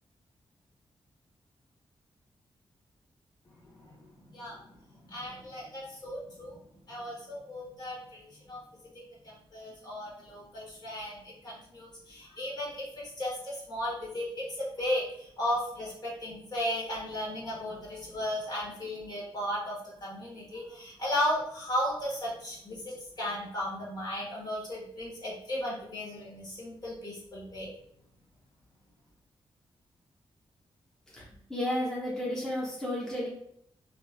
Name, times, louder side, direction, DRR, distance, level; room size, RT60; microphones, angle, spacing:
voice 1, 3.6-6.6 6.9-8.6 8.9-27.7, left 1 dB, 40° left, -5 dB, 1.4 m, -35 dB
voice 2, 31.1-33.3, left 1 dB, 5° left, -7 dB, 1.1 m, -32 dB
4.1 x 2.6 x 2.2 m, 0.72 s
cardioid pair, 90°, 10 cm